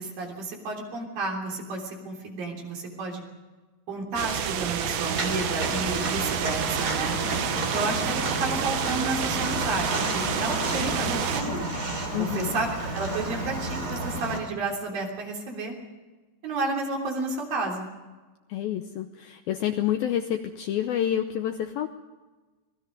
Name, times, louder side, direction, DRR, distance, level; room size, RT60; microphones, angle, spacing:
voice 1, 0.0-3.2 3.9-7.2 7.7-11.7 12.2-12.7 12.9-15.7 16.4-17.9, right 3 dB, 55° right, 0 dB, 4.8 m, -31 dB
sound 1, 4.2-11.4, right 8 dB, 80° right, 3.6 m, -30 dB
Walk footsteps, 5.0-14.4, right 2 dB, 25° right, 3.4 m, -31 dB
voice 2, 12.1-12.6 18.5-21.9, left 11 dB, 75° left, 7 dB, 2.2 m, -28 dB
26.5 x 20.0 x 5.3 m, 1.2 s
omnidirectional pair, 5.1 m